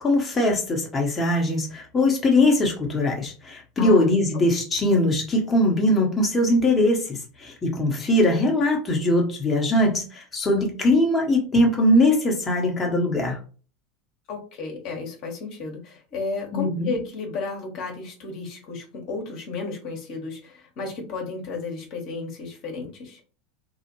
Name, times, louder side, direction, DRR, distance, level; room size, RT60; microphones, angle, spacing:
voice 1, 0.0-13.4 16.5-16.9, left 1 dB, 20° left, 0 dB, 1.0 m, -21 dB
voice 2, 3.8-4.1 14.3-23.2, left 4 dB, 50° left, 1 dB, 1.0 m, -33 dB
2.7 x 2.4 x 3.0 m, 0.37 s
figure-of-eight pair, 80°, 0 cm